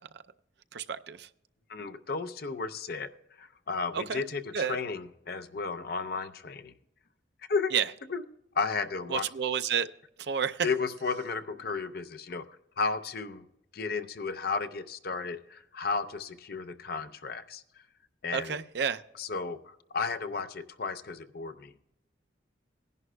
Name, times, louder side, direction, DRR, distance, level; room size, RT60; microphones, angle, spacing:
voice 1, 0.7-1.3 3.9-4.2 4.5-4.8 7.7-7.9 9.1-9.9 10.2-10.7 18.3-19.0, right 7 dB, 60° right, 0.5 m, -30 dB
voice 2, 1.7-3.1 3.4-6.7 7.5-7.7 8.1-8.2 8.5-9.3 10.6-12.5 12.8-13.4 13.7-17.6 18.2-18.6 19.2-21.7, left 4 dB, 55° left, 0.6 m, -33 dB
19.5 x 11.0 x 2.2 m
head